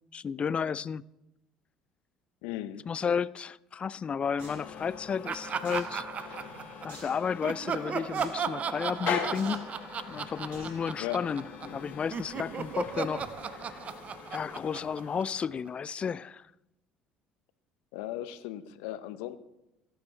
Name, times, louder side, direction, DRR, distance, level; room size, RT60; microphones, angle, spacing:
voice 1, 0.1-1.0 2.9-6.0 6.8-9.7 10.1-11.4 11.7-13.3 13.5-13.8 14.3-16.5, left 6 dB, 35° left, 0.3 m, -32 dB
voice 2, 2.4-2.9 11.0-11.2 17.9-19.4, left 13 dB, 80° left, 0.6 m, -37 dB
sound 1, 4.4-15.7, left 7 dB, 60° left, 1.6 m, -41 dB
sound 2, 4.4-4.6 5.6-5.9 6.9-7.2 8.1-8.3 9.3-9.6 10.5-10.8 11.3-11.4, right 2 dB, 70° right, 4.9 m, -47 dB
Laughter, 5.3-7.0 7.4-11.8 12.1-15.7, right 7 dB, 45° right, 0.6 m, -36 dB
16.0 x 9.0 x 3.3 m
hypercardioid pair, 70°, 3 cm